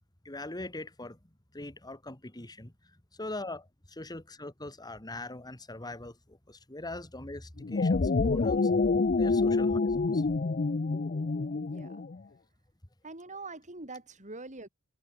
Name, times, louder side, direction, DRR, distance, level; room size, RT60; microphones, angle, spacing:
voice 1, 0.2-1.2 1.5-2.7 3.2-8.7 9.2-10.2, left 2 dB, 20° left, 2.0 m, -41 dB
sound 1, 7.6-12.2, left 3 dB, 40° left, 0.6 m, -27 dB
voice 2, 11.5-12.0 13.0-14.7, right 3 dB, 35° right, 6.3 m, -44 dB
head